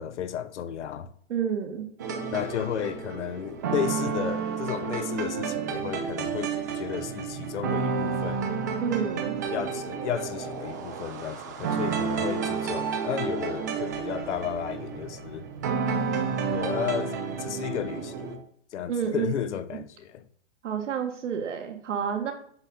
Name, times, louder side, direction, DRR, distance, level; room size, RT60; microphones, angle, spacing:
voice 1, 0.0-1.1 2.3-8.5 9.5-15.5 16.5-18.4 18.7-20.2, left 9 dB, 80° left, 0.8 m, -33 dB
voice 2, 1.3-1.9 8.8-9.4 18.9-19.3 19.7-19.8 20.6-22.3, right 7 dB, 85° right, 1.6 m, -29 dB
sound 1, 2.0-18.4, right 6 dB, 15° right, 0.3 m, -31 dB
7.9 x 2.7 x 5.7 m
hypercardioid pair, 155°, 35 cm